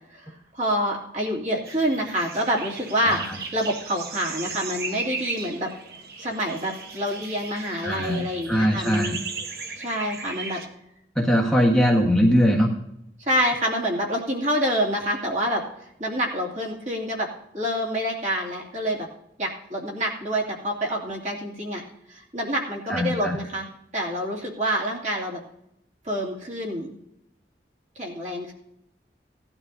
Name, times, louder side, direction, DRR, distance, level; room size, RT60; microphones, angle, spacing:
voice 1, 0.1-5.7 6.2-9.2 9.8-10.6 13.2-15.6 16.0-17.3 17.5-19.1 19.4-21.8 22.1-23.7 23.9-25.4 26.0-27.0 28.0-28.5, equal, 40° right, -2 dB, 2.6 m, -27 dB
sound 1, 1.6-10.7, right 4 dB, 60° right, 1.1 m, -36 dB
voice 2, 3.0-3.4 7.8-9.2 11.1-12.7 22.9-23.4, equal, 5° left, -3 dB, 1.4 m, -21 dB
18.0 x 11.5 x 2.7 m, 0.79 s
head